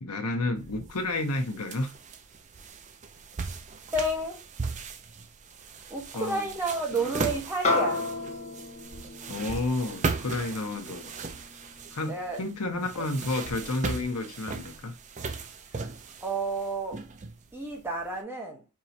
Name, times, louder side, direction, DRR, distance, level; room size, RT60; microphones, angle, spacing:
voice 1, 0.0-1.9 6.1-6.5 6.9-7.2 9.3-11.1 11.9-15.0, left 2 dB, 80° left, 1.0 m, -31 dB
sound 1, 0.6-18.0, right 4 dB, 35° right, 0.5 m, -38 dB
voice 2, 3.9-4.4 5.9-8.0 12.1-12.4 12.9-13.1 16.2-17.0 17.5-18.6, right 2 dB, 10° right, 1.2 m, -31 dB
sound 2, 7.6-12.3, left 3 dB, 30° left, 1.1 m, -32 dB
4.7 x 3.0 x 2.8 m
head